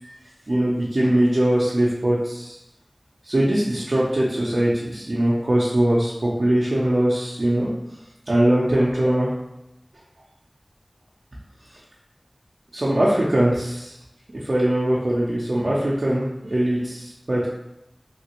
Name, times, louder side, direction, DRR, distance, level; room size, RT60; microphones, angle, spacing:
voice 1, 0.5-2.6 3.2-7.7 8.3-9.3 12.7-13.9 14.4-16.3 16.5-17.5, right 1 dB, 65° right, -6 dB, 0.5 m, -21 dB
3.2 x 2.5 x 2.9 m, 0.89 s
wide cardioid pair, 40°, 0 cm